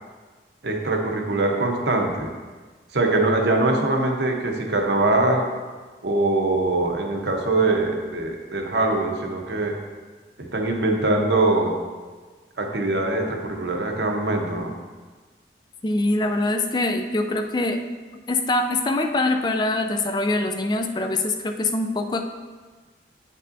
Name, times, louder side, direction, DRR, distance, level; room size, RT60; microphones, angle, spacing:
voice 1, 0.6-2.3 2.9-5.5 6.0-9.8 10.4-11.8 12.6-14.7, right 2 dB, 75° right, 2 dB, 0.9 m, -22 dB
voice 2, 15.8-17.8 18.3-22.2, left 2 dB, 25° left, 7 dB, 0.4 m, -23 dB
9.5 x 5.4 x 2.7 m, 1.4 s
head